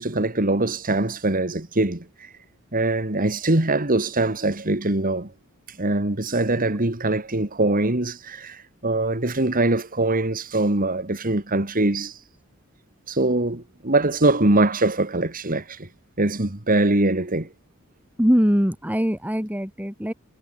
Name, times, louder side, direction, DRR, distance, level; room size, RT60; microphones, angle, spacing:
voice 1, 0.0-2.3 2.7-5.3 5.7-12.2 13.1-15.9 16.2-17.5, right 2 dB, 40° right, 2.4 m, -23 dB
voice 2, 18.2-20.1, equal, 10° right, 4.4 m, -22 dB
head